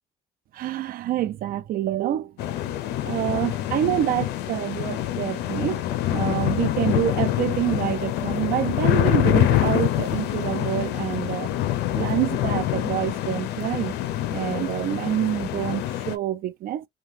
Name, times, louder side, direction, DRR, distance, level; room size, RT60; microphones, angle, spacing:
voice 1, 0.5-2.3 3.0-5.9 6.1-11.5 11.9-13.9 14.3-16.8, right 12 dB, 60° right, 0.4 m, -27 dB
sound 1, 2.4-16.1, left 13 dB, 85° left, 0.5 m, -25 dB
2.8 x 2.2 x 3.0 m
cardioid pair, 110°, 17 cm